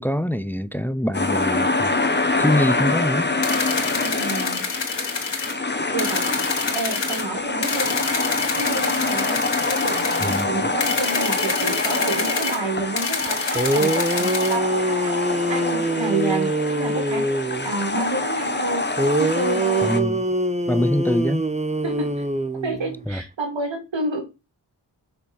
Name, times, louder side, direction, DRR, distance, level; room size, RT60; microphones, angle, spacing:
voice 1, 0.0-1.9 2.4-3.3 10.2-10.7 19.8-20.2 20.7-21.5 23.1-23.2, equal, 5° left, 0.8 m, -24 dB
sound 1, 1.1-20.0, left 3 dB, 25° left, 1.5 m, -25 dB
sound 2, 3.4-5.5 6.0-7.2 7.6-10.4 10.8-12.6 13.0-14.6, left 4 dB, 80° left, 2.4 m, -27 dB
voice 2, 4.0-4.6 5.9-6.2 6.7-8.1 8.6-9.4 9.7-15.2 15.5-16.5 16.7-18.8 19.2-19.9 21.1-21.2 21.8-22.1 22.6-24.3, right 2 dB, 90° right, 3.3 m, -29 dB
sound 3, 13.3-13.4 13.5-17.7 19.0-23.0, right 1 dB, 15° right, 1.1 m, -24 dB
7.0 x 5.8 x 6.5 m
cardioid pair, 50°, 44 cm